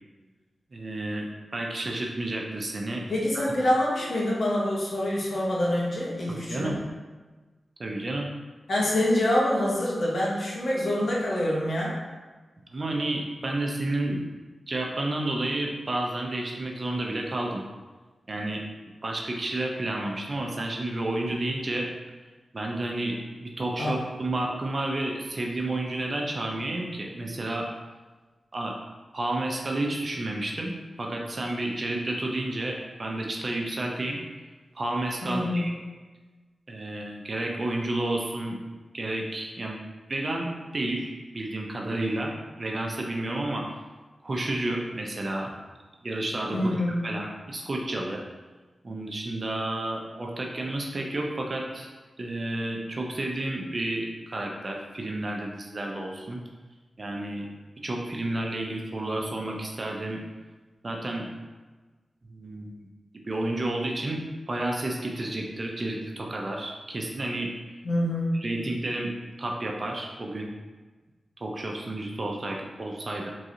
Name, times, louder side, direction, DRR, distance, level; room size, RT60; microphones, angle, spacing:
voice 1, 0.7-1.3 1.5-3.1 3.3-3.4 6.3-6.8 7.8-8.3 12.7-14.3 14.7-17.6 18.3-18.7 19.0-21.9 22.5-27.7 28.5-28.8 29.1-34.2 34.7-35.7 36.7-38.6 38.9-39.8 40.1-43.7 44.2-45.5 46.0-46.6 47.0-48.2 48.8-51.9 52.2-56.4 57.0-57.5 57.8-60.2 60.8-61.3 62.3-62.8 63.3-64.2 64.5-67.5 68.4-69.1 69.4-70.5 71.4-73.3, right 1 dB, 50° right, 0 dB, 0.6 m, -31 dB
voice 2, 3.1-6.8 8.7-12.0 23.8-24.0 35.2-35.7 46.5-47.0 67.8-68.4, left 1 dB, 65° left, -4 dB, 1.0 m, -26 dB
3.7 x 3.0 x 2.6 m, 1.3 s
cardioid pair, 50°, 0 cm